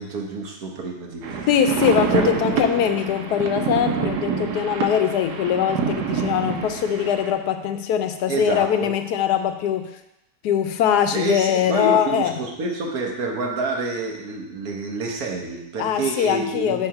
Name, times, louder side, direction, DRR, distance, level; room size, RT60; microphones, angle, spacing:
voice 1, 0.0-1.5 2.1-2.3 8.3-8.9 11.1-16.9, right 3 dB, 65° right, 1 dB, 1.4 m, -28 dB
sound 1, 1.2-7.3, right 6 dB, 85° right, 1.3 m, -26 dB
voice 2, 1.5-9.9 10.4-12.3 15.8-16.9, left 9 dB, 80° left, 8 dB, 1.2 m, -22 dB
8.4 x 2.9 x 5.7 m, 0.86 s
omnidirectional pair, 1.7 m